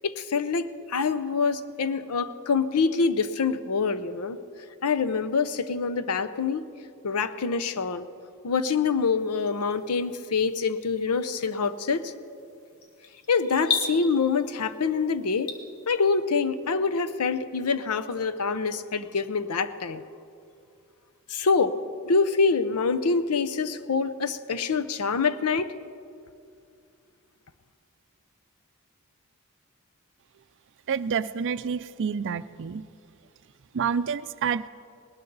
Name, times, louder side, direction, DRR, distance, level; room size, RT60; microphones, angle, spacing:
voice 1, 0.0-4.4 4.8-6.7 7.0-8.1 8.4-12.1 13.3-15.5 15.9-20.0 21.3-21.7 22.1-25.7, left 5 dB, 85° left, 11 dB, 0.7 m, -25 dB
sound 1, 9.2-16.2, left 5 dB, 65° left, 1.5 m, -38 dB
voice 2, 30.9-32.8 33.7-34.7, right 6 dB, 55° right, 15 dB, 0.4 m, -28 dB
19.5 x 19.0 x 4.0 m, 2.4 s
head